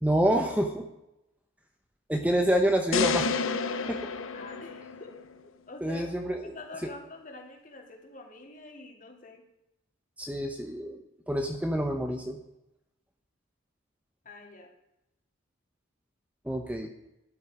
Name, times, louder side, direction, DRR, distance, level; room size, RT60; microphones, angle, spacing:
voice 1, 0.0-0.8 2.1-3.3 3.9-4.0 5.8-6.5 10.2-11.0 11.3-12.4 16.4-16.9, right 1 dB, 5° right, 4 dB, 0.9 m, -27 dB
sound 1, 2.9-5.2, left 4 dB, 85° left, 1.0 m, -30 dB
voice 2, 4.3-5.1 5.4-9.4 11.3-11.4 14.2-14.7, left 2 dB, 40° left, 1 dB, 2.8 m, -46 dB
13.0 x 11.5 x 5.0 m, 0.88 s
head